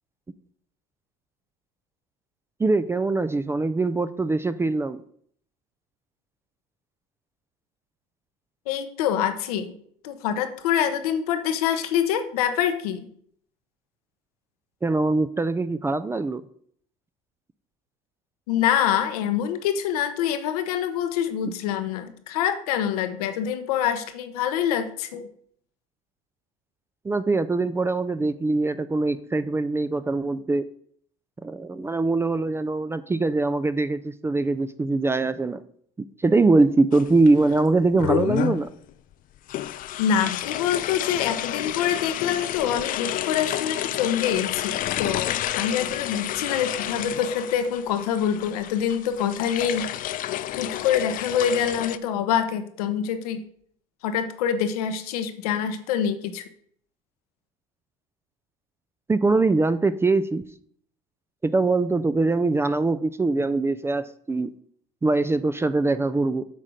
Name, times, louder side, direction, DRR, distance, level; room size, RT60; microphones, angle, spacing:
voice 1, 2.6-5.0 14.8-16.4 27.0-30.7 31.4-35.6 36.0-38.7 59.1-60.4 61.4-64.5 65.0-66.4, right 3 dB, 15° right, 12 dB, 0.4 m, -23 dB
voice 2, 8.7-9.7 10.0-13.1 18.5-25.3 40.0-49.9 50.6-53.4 54.0-56.4, left 9 dB, 85° left, 8 dB, 0.9 m, -25 dB
sound 1, 36.9-37.6 38.0-38.7 39.5-52.0, left 13 dB, 45° left, 0.4 m, -30 dB
8.3 x 3.8 x 6.3 m, 0.62 s
supercardioid pair, 90°, 19 cm